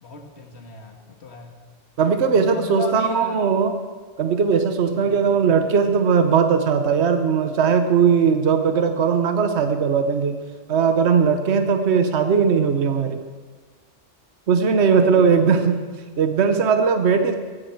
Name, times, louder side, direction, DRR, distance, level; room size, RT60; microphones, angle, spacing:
voice 1, 0.0-1.5 2.3-3.5 4.9-5.3 14.7-15.5, left 4 dB, 65° left, 3 dB, 1.9 m, -35 dB
voice 2, 2.0-3.7 4.2-10.4 10.7-13.2 14.5-15.8 16.2-17.3, right 6 dB, 70° right, 7 dB, 1.2 m, -19 dB
15.5 x 15.5 x 4.6 m, 1.4 s
omnidirectional pair, 1.2 m